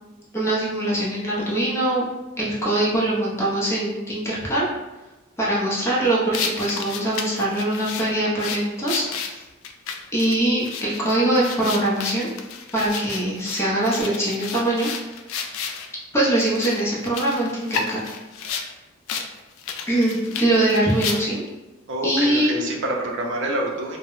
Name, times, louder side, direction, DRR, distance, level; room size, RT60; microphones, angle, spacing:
voice 1, 0.3-2.0 2.4-4.7 5.4-9.0 10.1-12.3 12.7-14.9 16.1-18.0 19.9-21.4 22.0-22.6, right 1 dB, 15° left, -6 dB, 0.6 m, -22 dB
sound 1, 6.3-15.9 16.4-18.7 19.1-19.3 19.6-21.5, left 6 dB, 85° left, 0.3 m, -32 dB
voice 2, 21.9-24.0, right 1 dB, 65° right, 0 dB, 0.5 m, -27 dB
2.1 x 2.0 x 3.7 m, 1.1 s
head